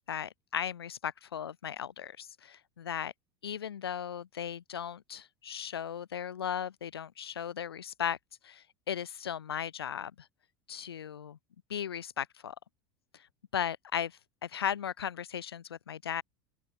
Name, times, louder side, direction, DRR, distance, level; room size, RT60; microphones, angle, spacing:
voice 1, 0.0-3.1 3.4-8.2 8.4-10.3 10.7-11.4 11.7-12.5 13.1-13.3 13.5-16.2, left 9 dB, 75° left, 2.9 m, -36 dB
open air
figure-of-eight pair, 75°, 13 cm